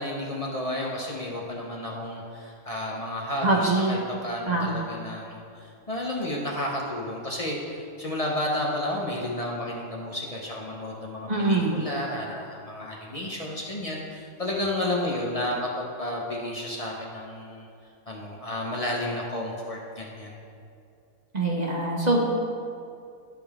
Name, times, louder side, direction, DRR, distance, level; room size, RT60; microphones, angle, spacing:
voice 1, 0.0-4.0 4.2-17.7 18.1-20.4, left 1 dB, 35° left, -3 dB, 0.6 m, -32 dB
voice 2, 3.4-4.0 4.5-4.8 11.3-11.8 21.3-22.2, right 2 dB, 40° right, -2 dB, 0.6 m, -24 dB
11.5 x 5.3 x 3.5 m, 2.5 s
omnidirectional pair, 1.7 m